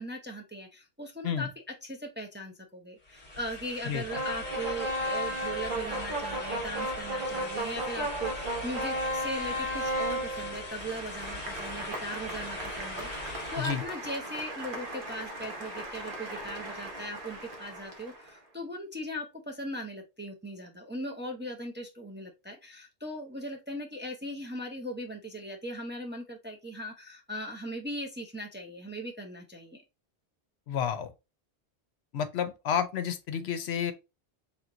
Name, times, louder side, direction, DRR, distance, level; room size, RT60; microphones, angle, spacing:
voice 1, 0.0-1.5 1.8-29.8, equal, 10° right, 0.6 m, -39 dB
sound 1, 3.0-13.9, left 2 dB, 45° left, 1.3 m, -41 dB
sound 2, 4.1-18.3, right 1 dB, 55° right, 1.1 m, -35 dB
voice 2, 30.7-31.1 32.1-33.9, left 8 dB, 75° left, 0.9 m, -30 dB
3.5 x 3.1 x 3.7 m
omnidirectional pair, 1.1 m